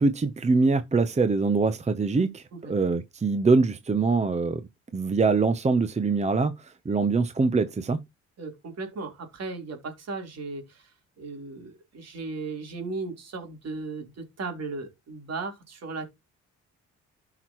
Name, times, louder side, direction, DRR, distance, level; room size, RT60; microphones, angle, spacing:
voice 1, 0.0-4.6 4.9-8.0, right 4 dB, 20° right, 0.9 m, -24 dB
voice 2, 8.4-16.0, right 3 dB, 55° right, 3.9 m, -36 dB
13.0 x 5.9 x 3.1 m
cardioid pair, 90°, 30 cm